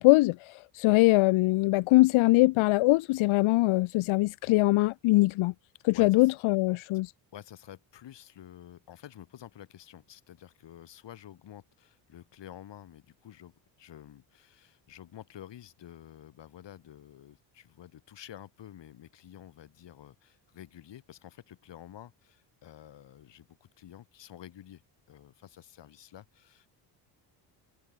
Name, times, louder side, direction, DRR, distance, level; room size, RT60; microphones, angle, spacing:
voice 1, 0.0-5.5 5.9-7.1, left 20 dB, 85° left, 1.3 m, -22 dB
voice 2, 5.9-6.3 7.3-26.7, left 11 dB, 65° left, 7.4 m, -50 dB
cardioid pair, 100°, 47 cm